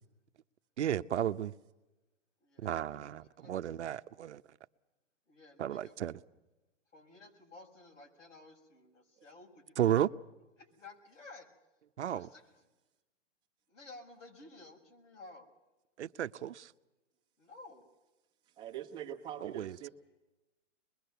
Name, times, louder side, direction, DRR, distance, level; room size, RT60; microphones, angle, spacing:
voice 1, 0.8-1.5 2.6-4.4 5.6-6.2 9.8-10.1 12.0-12.3 16.0-16.7 19.4-19.9, right 11 dB, 65° right, 0.8 m, -33 dB
voice 2, 2.4-2.8 3.4-3.6 5.3-5.9 6.9-10.0 10.6-11.5 12.0-12.4 13.7-15.5 17.4-17.9, left 3 dB, 90° left, 6.9 m, -54 dB
voice 3, 18.6-19.9, right 10 dB, 10° right, 1.1 m, -43 dB
24.5 x 22.0 x 6.9 m
hypercardioid pair, 165°, 36 cm